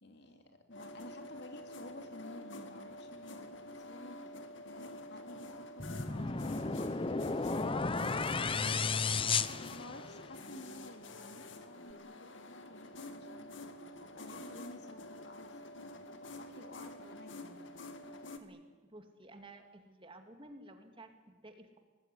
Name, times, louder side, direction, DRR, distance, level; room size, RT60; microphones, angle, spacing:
voice 1, 0.0-4.3 4.6-8.6 9.3-13.5 14.1-17.8, left 1 dB, 60° left, 5 dB, 3.1 m, -53 dB
sound 1, 0.7-18.4, left 2 dB, 80° left, 2.1 m, -48 dB
sound 2, 5.8-10.4, left 4 dB, 30° left, 0.8 m, -33 dB
voice 2, 18.4-21.8, right 1 dB, 30° right, 6 dB, 2.4 m, -54 dB
25.0 x 19.5 x 10.0 m, 1.3 s
head